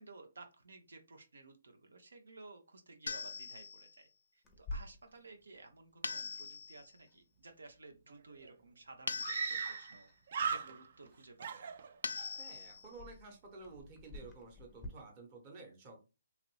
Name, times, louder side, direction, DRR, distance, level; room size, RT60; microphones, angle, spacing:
voice 1, 0.0-10.1 10.5-11.7, right 3 dB, 85° right, 5 dB, 0.7 m, -55 dB
sound 1, 3.1-4.0 6.0-6.9 9.1-10.0 12.0-13.0, left 4 dB, 85° left, 0.3 m, -42 dB
Clock, 4.4-14.9, left 2 dB, 10° left, 0.6 m, -53 dB
Screaming, 8.1-8.2 8.4-8.5 9.2-10.0 10.3-11.1 11.4-12.3, right 6 dB, 50° right, 0.3 m, -38 dB
voice 2, 12.4-16.0, right 3 dB, 25° right, 2 dB, 0.9 m, -52 dB
2.9 x 2.5 x 3.0 m, 0.29 s
hypercardioid pair, 160°, 0 cm